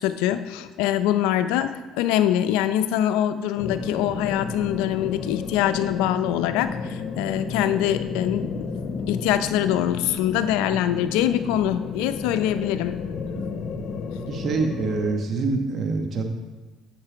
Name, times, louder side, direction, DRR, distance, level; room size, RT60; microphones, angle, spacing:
voice 1, 0.0-8.6 9.1-12.9, left 11 dB, 85° left, 11 dB, 0.5 m, -24 dB
sound 1, 3.6-15.2, left 5 dB, 55° left, 0.8 m, -32 dB
voice 2, 14.3-16.2, right 3 dB, 50° right, 4 dB, 1.2 m, -25 dB
8.7 x 6.6 x 4.6 m, 1.3 s
supercardioid pair, 85°, 0 cm